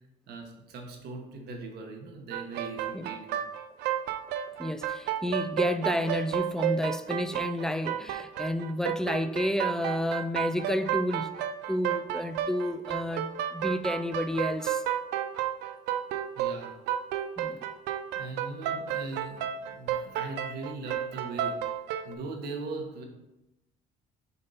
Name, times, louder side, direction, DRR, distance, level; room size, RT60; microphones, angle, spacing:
voice 1, 0.3-3.4 6.6-6.7 16.4-16.7 18.1-21.6 22.0-23.0, right 3 dB, 70° right, 1.2 m, -40 dB
sound 1, 2.3-22.1, right 10 dB, 90° right, 0.5 m, -32 dB
voice 2, 4.6-11.3 11.7-14.8 17.4-17.6, left 1 dB, 5° left, 0.3 m, -30 dB
6.7 x 2.8 x 5.6 m
cardioid pair, 110°, 17 cm